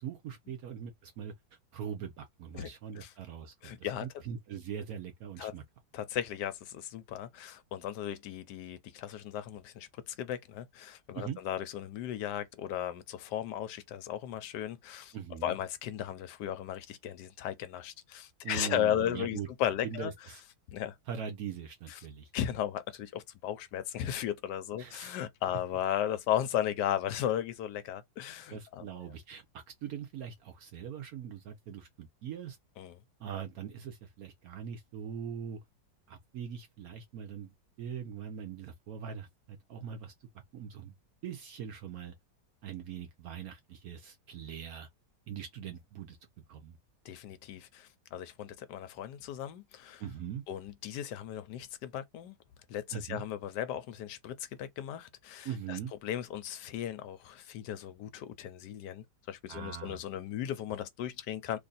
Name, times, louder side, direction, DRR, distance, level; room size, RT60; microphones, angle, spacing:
voice 1, 0.0-1.3 1.7-5.6 11.1-11.4 15.1-15.5 18.4-19.5 19.8-20.4 21.1-22.3 24.8-25.2 28.5-32.6 33.2-35.6 36.1-40.1 40.5-40.9 41.2-42.1 42.6-44.9 45.3-46.2 46.5-46.8 50.0-50.4 52.9-53.2 55.4-55.9 59.5-60.0, right 8 dB, 65° right, 0.9 m, -41 dB
voice 2, 3.6-4.0 5.4-5.5 5.9-15.1 15.4-20.1 20.7-21.0 22.3-28.9 32.8-33.0 47.0-50.0 50.5-52.4 52.7-61.6, left 11 dB, 75° left, 1.1 m, -36 dB
3.0 x 2.6 x 3.9 m
omnidirectional pair, 1.9 m